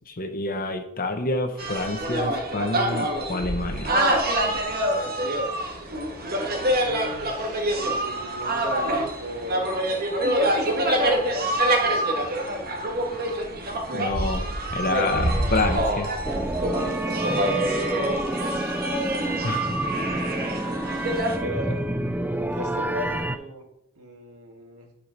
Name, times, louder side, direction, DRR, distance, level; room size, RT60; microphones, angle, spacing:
voice 1, 0.1-3.9 13.9-16.1 19.4-19.8, left 2 dB, 40° left, 7 dB, 1.0 m, -28 dB
sound 1, 1.6-21.4, right 1 dB, 45° right, 1.7 m, -26 dB
voice 2, 6.8-10.0 10.6-11.5 11.8-12.7 16.6-18.1 18.4-18.6 20.0-20.9 21.4-21.8 22.5-23.7 24.0-24.9, equal, 70° right, 1 dB, 2.0 m, -38 dB
sound 2, 16.2-23.4, right 1 dB, 5° right, 0.4 m, -29 dB
10.5 x 4.9 x 5.2 m, 0.81 s
head